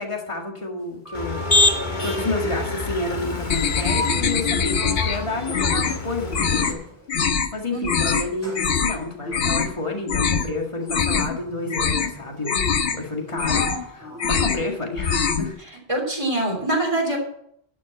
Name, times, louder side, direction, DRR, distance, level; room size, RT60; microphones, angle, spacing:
voice 1, 0.0-6.8 7.5-15.6, left 2 dB, 30° left, 1 dB, 2.0 m, -30 dB
Sliding door, 0.8-2.4 4.2-4.5 4.7-7.2 7.8-15.3, equal, 15° left, 3.8 m, -41 dB
Motor vehicle (road), 1.1-6.7, left 2 dB, 50° left, 1.6 m, -26 dB
sound 1, 3.5-5.2 5.5-6.0 6.3-6.7 7.1-7.5 7.8-8.2 8.5-9.0 9.3-9.7 10.1-10.5 10.8-11.4 11.7-12.1 12.4-13.0 13.3-13.8 14.1-14.6 14.9-15.5, left 6 dB, 75° left, 1.2 m, -23 dB
voice 2, 15.9-17.2, right 2 dB, 30° right, 0 dB, 3.4 m, -23 dB
12.0 x 6.0 x 7.5 m, 0.69 s
omnidirectional pair, 1.0 m